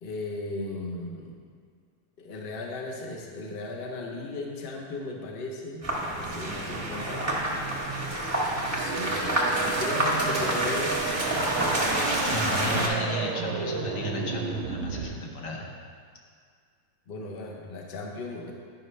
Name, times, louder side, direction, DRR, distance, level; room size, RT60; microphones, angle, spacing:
voice 1, 0.0-1.4 2.2-7.4 8.7-11.0 12.7-12.8 17.1-18.5, left 2 dB, 85° left, -1 dB, 0.5 m, -36 dB
sound 1, 5.8-12.9, right 1 dB, 15° right, 0.5 m, -28 dB
sound 2, 8.6-15.0, right 5 dB, 70° right, 1.4 m, -33 dB
voice 2, 12.3-15.7, left 1 dB, 65° left, -1 dB, 1.5 m, -34 dB
10.5 x 5.2 x 3.2 m, 2.1 s
omnidirectional pair, 2.3 m